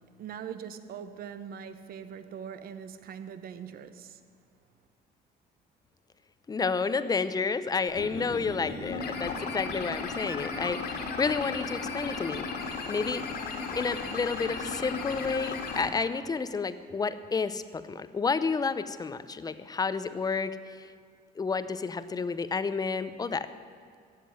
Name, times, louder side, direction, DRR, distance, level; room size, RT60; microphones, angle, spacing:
voice 1, 0.0-4.2, right 8 dB, 60° right, 1.0 m, -42 dB
voice 2, 6.5-12.5 12.9-13.3 13.7-20.6 21.4-23.5, left 4 dB, 20° left, 0.7 m, -30 dB
sound 1, 7.9-15.9, left 4 dB, 70° left, 2.3 m, -35 dB
15.0 x 7.6 x 9.5 m
cardioid pair, 110°, 17 cm